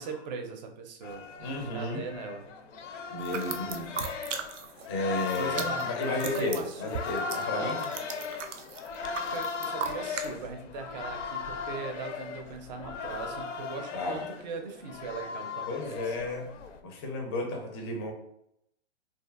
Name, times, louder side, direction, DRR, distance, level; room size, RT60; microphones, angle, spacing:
voice 1, 0.0-1.3 1.7-2.5 3.5-3.9 5.4-6.9 7.5-7.7 9.2-16.2, right 5 dB, 40° right, 4 dB, 0.5 m, -39 dB
sound 1, 1.0-16.8, left 5 dB, 90° left, 0.5 m, -37 dB
voice 2, 1.4-2.1 3.1-4.0 4.9-7.9 13.9-14.2 15.7-16.5 16.8-18.1, left 2 dB, 20° left, 2 dB, 0.4 m, -33 dB
sound 2, 3.2-4.9 5.1-10.3, right 6 dB, 85° right, 0.5 m, -38 dB
2.6 x 2.4 x 2.4 m, 0.77 s
hypercardioid pair, 135°, 36 cm